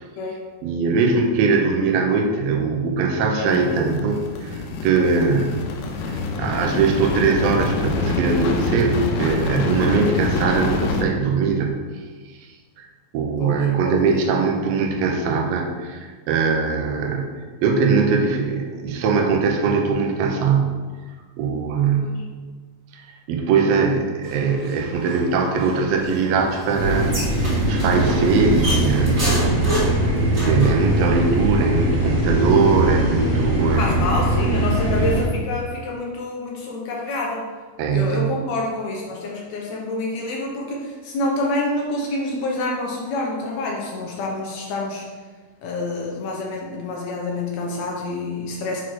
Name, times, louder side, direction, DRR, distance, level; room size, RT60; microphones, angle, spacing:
voice 1, 0.6-5.6 6.4-11.8 12.8-12.9 13.1-17.3 17.6-20.8 21.4-22.1 23.3-29.3 30.4-33.9 37.8-38.3, right 4 dB, 80° right, 2 dB, 1.5 m, -21 dB
voice 2, 3.4-3.8 13.4-14.3 22.0-22.2 29.1-29.9 33.8-37.5 37.9-45.0 45.6-48.8, left 2 dB, 70° left, -1 dB, 1.8 m, -27 dB
sound 1, 3.5-11.0, left 3 dB, 90° left, 2.4 m, -26 dB
sound 2, 24.2-30.8, right 1 dB, 30° right, 1.6 m, -30 dB
sound 3, 26.8-35.2, right 1 dB, 45° right, 2.4 m, -21 dB
6.0 x 4.1 x 4.6 m, 1.4 s
omnidirectional pair, 3.9 m